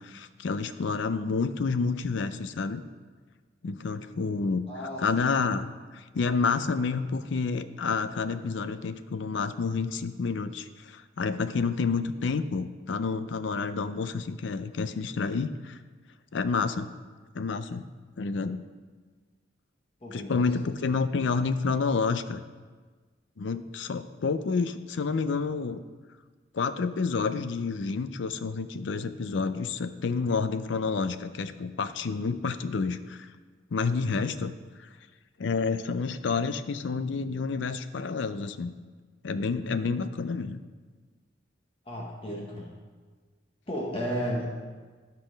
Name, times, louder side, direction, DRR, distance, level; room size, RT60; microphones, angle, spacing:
voice 1, 0.0-2.8 3.6-5.7 5.9-15.8 16.3-16.9 17.3-17.8 18.2-18.6 20.1-22.4 23.4-25.8 26.5-33.3 33.7-34.5 34.8-34.9 35.4-38.8 39.2-40.6, left 4 dB, 75° left, 12 dB, 0.5 m, -29 dB
voice 2, 4.7-5.3 20.0-20.7 41.9-42.7 43.7-44.6, equal, 30° left, -3 dB, 1.0 m, -34 dB
12.0 x 4.2 x 5.1 m, 1.4 s
head